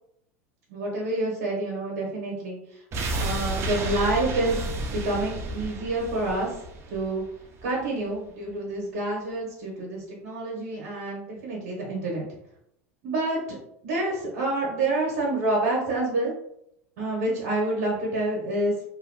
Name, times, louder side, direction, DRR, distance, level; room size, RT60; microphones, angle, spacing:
voice 1, 0.7-2.6 3.1-4.6 4.9-6.5 6.9-7.2 7.6-12.3 13.0-13.6 13.8-16.3 17.0-18.7, right 2 dB, 60° right, -3 dB, 1.0 m, -28 dB
sound 1, 2.9-7.9 8.2-8.3, right 2 dB, 35° right, 0.5 m, -32 dB
2.9 x 2.7 x 2.2 m, 0.75 s
hypercardioid pair, 95°, 8 cm